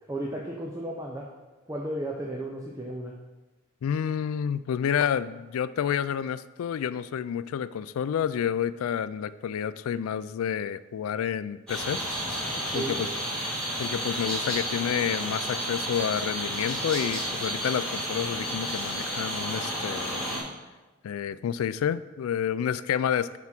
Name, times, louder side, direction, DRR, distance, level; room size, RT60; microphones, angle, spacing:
voice 1, 0.1-1.3 1.7-3.1 12.7-12.9, right 1 dB, 15° right, -2 dB, 0.5 m, -34 dB
voice 2, 3.8-12.0 12.7-13.1 13.8-20.3 21.0-23.4, left 8 dB, 80° left, 15 dB, 0.3 m, -29 dB
sound 1, 11.7-20.4, equal, 5° left, 2.4 m, -31 dB
5.9 x 4.5 x 5.9 m, 1.2 s
head